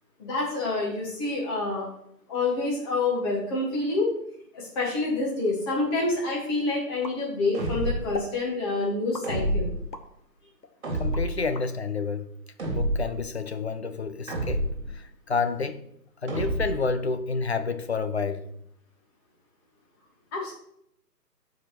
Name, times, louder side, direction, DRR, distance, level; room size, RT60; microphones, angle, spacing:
voice 1, 0.2-1.9 2.3-4.1 4.5-9.7 20.3-20.5, left 2 dB, 15° left, 1.8 m, -27 dB
sound 1, 7.0-7.7 8.1-8.4 9.1-10.1 10.6-11.7, left 3 dB, 85° left, 1.3 m, -39 dB
sound 2, 7.5-8.2 9.2-9.9 10.8-11.5 12.6-13.2 14.3-14.9 16.3-16.9, right 1 dB, 40° right, 2.2 m, -28 dB
voice 2, 11.0-12.3 12.7-14.7 14.9-15.8 16.2-18.4, left 4 dB, 40° left, 0.6 m, -29 dB
14.5 x 5.0 x 3.1 m
figure-of-eight pair, 145°, 49 cm